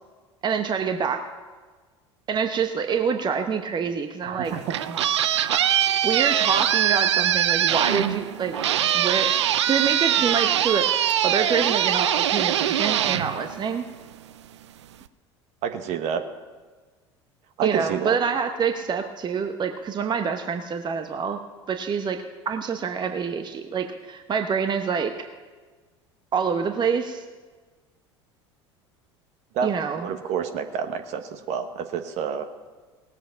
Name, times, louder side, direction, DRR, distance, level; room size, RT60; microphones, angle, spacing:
voice 1, 0.4-1.2 2.3-4.5 4.9-5.1 5.5-5.6 6.0-8.5 8.9-10.9 11.2-13.9 17.6-21.4 21.7-25.1 26.3-27.2 29.6-30.1, right 6 dB, 30° right, 6 dB, 1.0 m, -26 dB
voice 2, 4.2-4.6 15.6-16.2 17.6-18.2 29.5-29.7 30.0-32.5, right 7 dB, 55° right, 7 dB, 1.2 m, -28 dB
sound 1, 4.5-14.1, right 11 dB, 80° right, 0.5 m, -23 dB
18.5 x 8.2 x 5.7 m, 1.4 s
hypercardioid pair, 70°, 14 cm